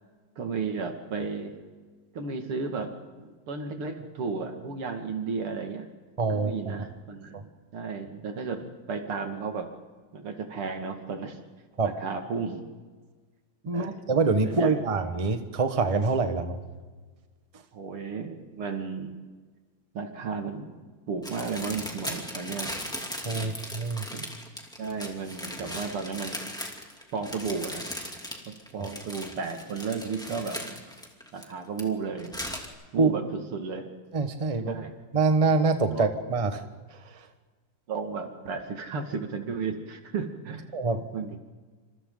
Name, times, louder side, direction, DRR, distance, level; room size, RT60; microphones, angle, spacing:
voice 1, 0.4-1.5 2.1-5.9 6.3-9.7 10.1-11.4 11.8-12.7 13.6-13.9 14.4-14.7 17.7-19.1 19.9-20.7 21.1-22.7 23.3-23.5 24.1-24.3 24.8-26.4 27.1-27.9 28.7-30.8 31.3-32.3 32.9-33.2 33.5-33.8 34.7-34.9 35.9-36.1 37.9-40.7 41.1-41.4, right 5 dB, 85° right, 4 dB, 3.0 m, -33 dB
voice 2, 6.2-6.7 7.3-7.4 11.8-11.9 13.7-16.6 17.5-17.6 23.2-24.1 28.8-28.9 33.0-33.1 34.1-34.7 35.1-36.6 36.9-37.3 40.7-41.1, right 4 dB, 20° right, 7 dB, 1.2 m, -25 dB
sound 1, 21.2-31.8 32.2-32.7, equal, ahead, 2.6 m, -38 dB
27.5 x 26.5 x 4.0 m, 1.4 s
omnidirectional pair, 2.4 m